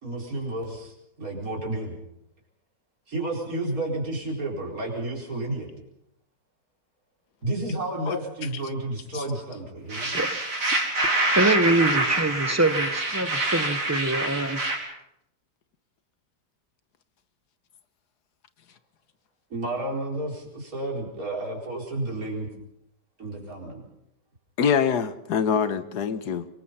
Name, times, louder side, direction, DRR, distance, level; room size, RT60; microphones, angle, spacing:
voice 1, 0.0-2.0 3.1-5.7 7.4-10.1 19.5-22.5 23.2-23.8, right 2 dB, 60° right, -1 dB, 5.1 m, -31 dB
sound 1, 9.9-14.8, right 2 dB, 80° right, 4.9 m, -26 dB
voice 2, 11.3-14.6, right 2 dB, 10° right, 10 dB, 0.9 m, -24 dB
voice 3, 24.6-26.5, left 7 dB, 75° left, 12 dB, 1.6 m, -24 dB
25.0 x 21.5 x 5.6 m, 0.80 s
omnidirectional pair, 1.8 m